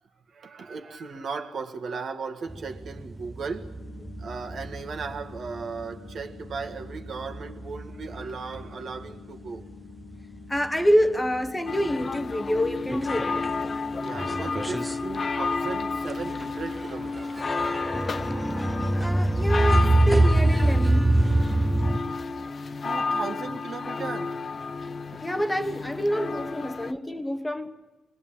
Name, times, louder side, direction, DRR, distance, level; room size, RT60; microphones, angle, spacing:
voice 1, 0.3-3.7 4.2-9.7 14.0-17.4 21.2-22.5 22.8-24.4 26.7-27.0, right 5 dB, 55° right, 1.8 m, -37 dB
sound 1, 2.5-9.1 9.5-10.6 11.0-11.1 11.4-11.5 11.8-13.6 14.0-22.0, right 1 dB, 10° right, 0.9 m, -25 dB
sound 2, 3.8-13.8, left 7 dB, 65° left, 1.8 m, -48 dB
voice 2, 10.5-13.5 18.9-21.2 25.2-27.7, equal, 10° left, 1.2 m, -27 dB
sound 3, 11.7-26.9, left 4 dB, 35° left, 0.7 m, -31 dB
25.0 x 21.0 x 8.9 m
cardioid pair, 90°, 0 cm